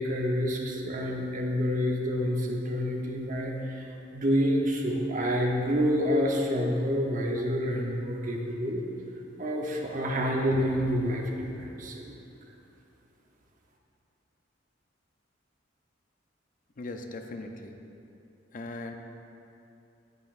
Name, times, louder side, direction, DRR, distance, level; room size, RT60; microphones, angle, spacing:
voice 1, 0.0-8.8 9.4-12.0, equal, 45° right, 0 dB, 0.9 m, -28 dB
voice 2, 16.8-17.8 18.5-18.9, left 2 dB, 45° left, 4 dB, 0.5 m, -39 dB
9.3 x 8.6 x 2.5 m, 2.7 s
head